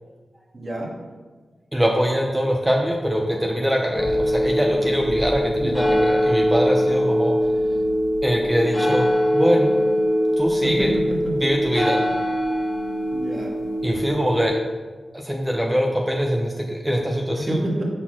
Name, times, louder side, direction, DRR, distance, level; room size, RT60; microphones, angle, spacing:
voice 1, 0.5-0.9 5.6-5.9 10.6-11.3 13.1-13.5 17.3-17.8, right 1 dB, 45° right, -1 dB, 1.8 m, -28 dB
voice 2, 1.7-7.4 8.2-9.7 10.4-10.9 11.3-12.0 13.8-14.6 15.1-17.6, equal, 10° right, 1 dB, 0.8 m, -23 dB
sound 1, 3.9-14.5, equal, 20° left, 1.6 m, -22 dB
6.0 x 4.0 x 6.0 m, 1.3 s
cardioid pair, 50°, 0 cm